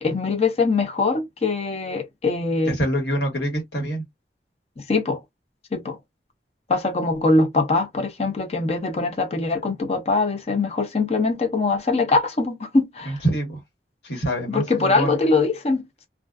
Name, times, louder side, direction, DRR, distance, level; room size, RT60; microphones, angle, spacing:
voice 1, 0.0-2.8 4.8-5.2 5.7-6.0 6.7-13.2 14.5-16.1, left 3 dB, 35° left, 0.6 m, -22 dB
voice 2, 2.7-4.0 13.0-13.6 14.0-15.2, right 1 dB, 75° left, 1.4 m, -25 dB
2.4 x 2.3 x 2.3 m
head